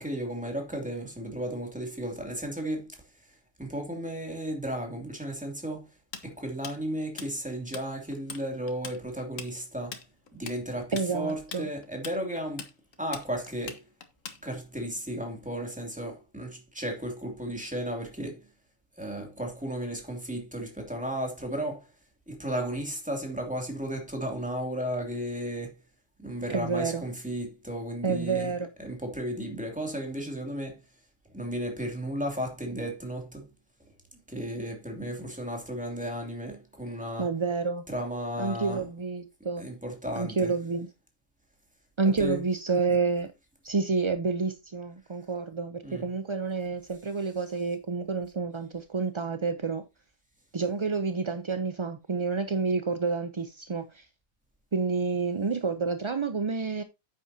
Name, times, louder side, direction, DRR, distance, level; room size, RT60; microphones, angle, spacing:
voice 1, 0.0-2.9 3.6-5.9 6.2-10.0 10.3-12.7 13.0-13.8 14.4-18.5 19.0-21.9 22.3-25.8 26.2-28.5 28.8-30.8 31.3-33.5 34.3-37.3 37.9-38.8 39.6-40.5 42.2-42.4 45.8-46.0, right 1 dB, 5° right, 2.6 m, -34 dB
Tools, 6.1-7.9 8.1-8.4 8.7-14.8, left 6 dB, 70° left, 1.6 m, -41 dB
voice 2, 10.9-11.7 26.5-27.0 28.0-28.7 37.2-37.8 38.4-39.7 40.2-40.9 42.0-43.3 43.6-49.8 50.5-54.1 54.7-56.8, right 4 dB, 35° right, 0.4 m, -29 dB
9.8 x 8.5 x 2.8 m
omnidirectional pair, 1.4 m